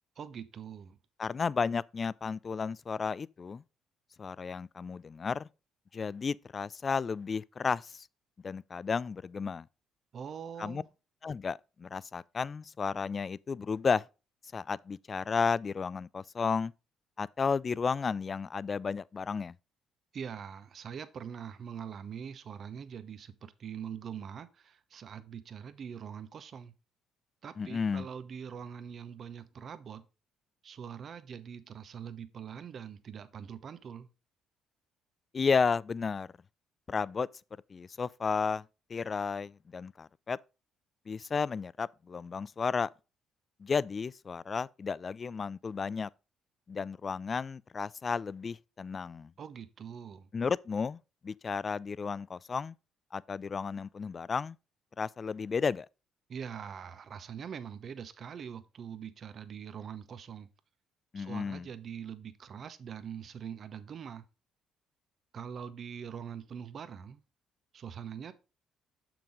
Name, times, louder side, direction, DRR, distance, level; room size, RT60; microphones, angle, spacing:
voice 1, 0.2-1.0 10.1-10.9 20.1-26.7 27.4-30.1 30.6-34.1 49.4-50.3 56.3-60.5 61.1-64.2 65.3-67.2 67.7-68.3, right 7 dB, 55° right, 0.8 m, -43 dB
voice 2, 1.2-3.6 4.2-5.5 5.9-8.1 8.4-9.7 10.6-10.8 11.2-14.0 14.5-16.7 17.2-19.5 27.6-28.1 35.3-36.3 36.9-37.3 37.7-40.4 41.1-42.9 43.6-46.1 46.7-49.3 50.3-52.7 53.1-54.6 55.0-55.9 61.1-61.7, left 5 dB, 40° left, 0.3 m, -33 dB
6.9 x 6.0 x 3.7 m
supercardioid pair, 65°, 0 cm